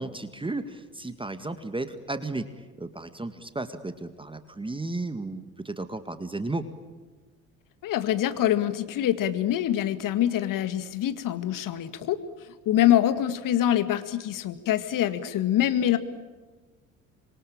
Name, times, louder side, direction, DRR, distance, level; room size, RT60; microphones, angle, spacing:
voice 1, 0.0-2.5 2.8-6.7, right 2 dB, 10° right, 10 dB, 1.9 m, -34 dB
voice 2, 7.8-12.2 12.7-16.0, left 12 dB, 50° left, 12 dB, 2.1 m, -25 dB
26.5 x 23.5 x 8.9 m, 1.3 s
figure-of-eight pair, 55°, 40 cm